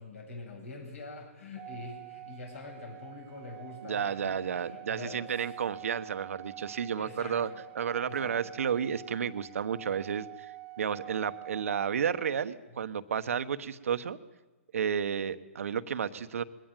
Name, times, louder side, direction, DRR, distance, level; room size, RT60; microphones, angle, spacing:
voice 1, 0.0-5.5 7.0-7.6 8.0-8.4, left 3 dB, 70° left, 3 dB, 7.8 m, -45 dB
Organ, 1.6-12.4, right 16 dB, 25° right, 0.8 m, -47 dB
voice 2, 3.8-7.5 7.7-14.2 14.7-16.4, right 7 dB, 75° right, 11 dB, 1.1 m, -32 dB
21.5 x 17.0 x 9.1 m, 1.2 s
hypercardioid pair, 135°, 7 cm